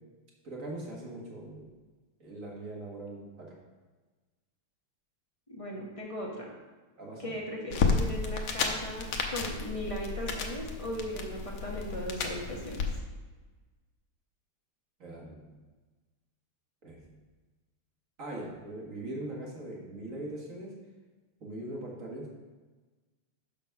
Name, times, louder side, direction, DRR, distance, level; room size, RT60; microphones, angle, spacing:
voice 1, 0.4-1.7 2.2-3.5 7.0-7.4 15.0-15.6 16.8-17.2 18.2-20.7 21.4-22.4, right 1 dB, 40° right, -2 dB, 1.7 m, -41 dB
voice 2, 5.5-6.5 7.2-12.9, equal, 35° left, -2 dB, 0.5 m, -38 dB
sound 1, 7.7-12.9, left 4 dB, 75° left, 1.6 m, -32 dB
6.0 x 5.6 x 5.8 m, 1.3 s
omnidirectional pair, 2.4 m